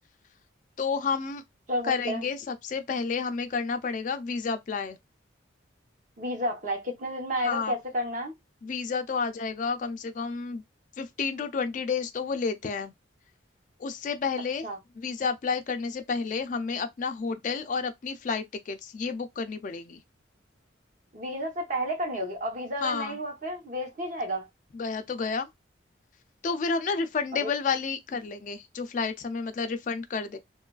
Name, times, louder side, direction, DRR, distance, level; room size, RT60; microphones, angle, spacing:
voice 1, 0.8-1.4 1.8-5.0 7.4-7.7 8.6-10.6 11.0-12.9 13.8-14.7 15.0-20.0 22.8-23.2 24.7-25.5 26.4-30.4, left 5 dB, 40° left, 0.3 m, -30 dB
voice 2, 1.7-2.2 6.2-8.3 14.6-14.8 21.1-24.5 27.3-27.5, equal, 40° right, 0.8 m, -31 dB
3.0 x 2.3 x 2.3 m
head